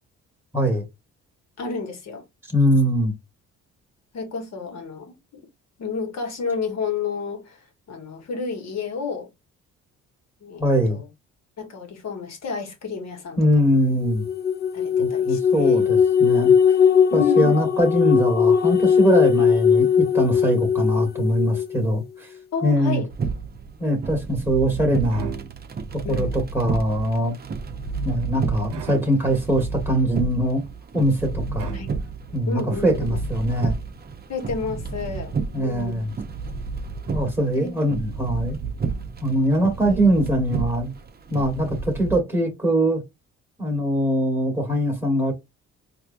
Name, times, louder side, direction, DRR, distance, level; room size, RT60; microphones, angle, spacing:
voice 1, 0.5-0.8 2.5-3.1 10.6-11.0 13.4-14.2 15.0-16.5 17.1-22.3 22.6-23.0 23.8-25.3 26.1-27.4 28.0-30.6 30.9-31.7 32.3-33.7 35.5-36.1 37.1-38.6 39.2-40.9 41.3-43.0 43.6-45.3, equal, 10° right, 1.3 m, -22 dB
voice 2, 1.6-2.2 4.1-5.4 5.8-9.3 10.4-11.1 11.6-13.7 14.7-15.8 17.1-17.6 22.5-23.1 26.0-26.4 31.7-31.9 32.5-33.2 34.3-36.0 37.5-37.9 39.9-40.0, left 5 dB, 60° left, 1.4 m, -31 dB
sound 1, 14.0-21.8, left 7 dB, 35° left, 0.4 m, -19 dB
sound 2, 23.1-42.2, right 4 dB, 30° right, 0.7 m, -31 dB
sound 3, 25.0-25.9 28.7-29.5 31.6-32.4, right 8 dB, 85° right, 0.7 m, -38 dB
4.3 x 2.7 x 2.5 m
cardioid pair, 90°, 30 cm